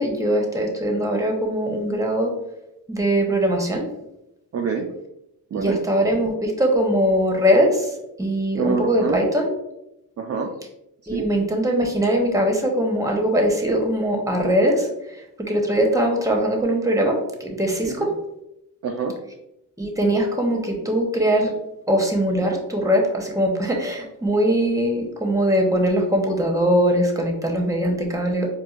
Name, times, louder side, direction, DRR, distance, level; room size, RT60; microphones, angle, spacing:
voice 1, 0.0-2.3 2.9-3.8 5.5-7.9 8.2-9.5 11.1-14.9 15.4-18.1 19.8-21.5 21.9-28.5, equal, 10° right, 1 dB, 0.8 m, -21 dB
voice 2, 4.5-5.0 5.5-5.9 8.6-9.2 10.2-10.6 11.0-11.3 17.9-18.1 18.8-19.2, right 5 dB, 40° right, 2 dB, 0.4 m, -26 dB
4.5 x 2.4 x 2.4 m, 0.88 s
cardioid pair, 70°, 40 cm